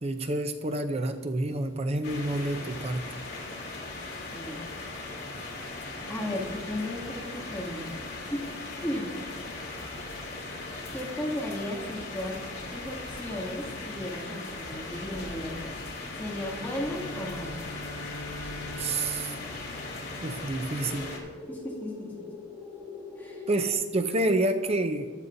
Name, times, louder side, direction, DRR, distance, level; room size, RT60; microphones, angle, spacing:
voice 1, 0.0-3.0 18.7-19.4 20.2-21.2 23.5-25.1, right 2 dB, 35° right, 7 dB, 0.6 m, -28 dB
sound 1, 2.0-21.2, left 2 dB, 60° left, 2.6 m, -39 dB
voice 2, 6.1-8.0 8.3-8.4 8.8-9.2 10.9-12.4 12.7-15.8 16.1-17.8 21.5-22.3 23.2-23.5, left 1 dB, 10° left, -5 dB, 2.4 m, -35 dB
Bowed string instrument, 16.3-21.0, left 2 dB, 80° left, 1.1 m, -43 dB
sound 2, 19.0-23.7, left 3 dB, 15° right, 3.5 m, -44 dB
15.5 x 11.0 x 2.7 m, 1.4 s
head